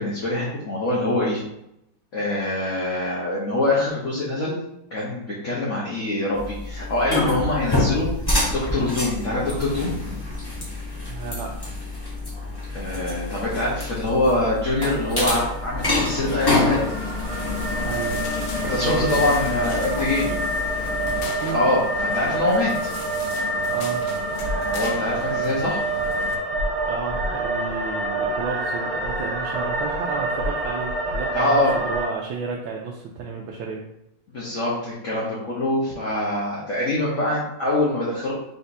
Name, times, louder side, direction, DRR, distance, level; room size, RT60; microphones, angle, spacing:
voice 1, 0.0-1.4 2.1-4.6 4.9-8.1 8.5-9.9 12.7-16.9 18.6-20.4 21.5-22.9 24.6-25.8 31.3-31.7 34.3-38.3, left 1 dB, 50° left, -6 dB, 1.0 m, -24 dB
sound 1, 6.3-21.2, left 2 dB, 20° left, 0.7 m, -28 dB
voice 2, 11.1-11.8 17.8-18.2 18.8-19.3 20.3-20.5 21.2-21.6 23.6-24.1 26.8-33.8, right 5 dB, 85° right, -1 dB, 1.4 m, -32 dB
sound 2, 14.7-32.1, right 2 dB, 55° right, 0.7 m, -27 dB
sound 3, 15.8-26.4, left 5 dB, 80° left, 1.4 m, -35 dB
4.2 x 4.1 x 2.6 m, 0.81 s
omnidirectional pair, 2.1 m